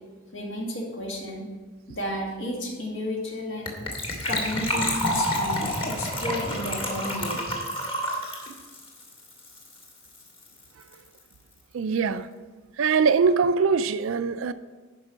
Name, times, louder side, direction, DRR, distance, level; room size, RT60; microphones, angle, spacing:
voice 1, 0.3-1.5 1.9-3.7 4.2-7.4, left 1 dB, 65° left, 2.2 m, -32 dB
Gurgling / Trickle dribble / Fill (with liquid), 3.7-9.9 10.1-10.2 10.4-10.6 10.9-11.0, left 1 dB, 25° left, 1.9 m, -29 dB
voice 2, 11.7-12.3 12.8-14.5, right 5 dB, 75° right, 0.4 m, -22 dB
11.5 x 5.3 x 5.1 m
head